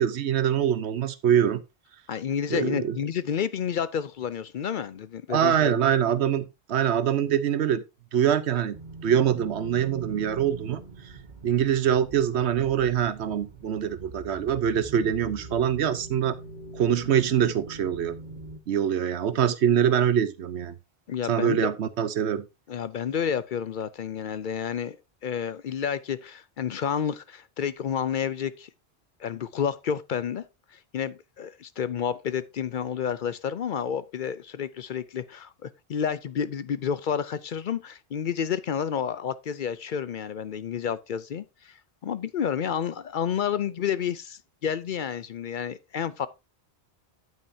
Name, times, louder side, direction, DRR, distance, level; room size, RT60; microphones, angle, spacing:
voice 1, 0.0-1.6 2.5-2.9 5.3-7.8 8.1-8.8 9.0-10.8 11.4-16.3 16.7-18.1 18.7-20.7 21.3-22.5, right 9 dB, 85° right, 1.1 m, -24 dB
voice 2, 2.1-5.8 21.1-21.6 22.7-25.0 25.2-28.7 29.2-30.4 30.7-41.8 42.0-46.3, left 8 dB, 60° left, 0.6 m, -30 dB
sound 1, 8.7-18.6, right 3 dB, 45° right, 1.4 m, -43 dB
9.3 x 8.8 x 2.7 m
omnidirectional pair, 1.1 m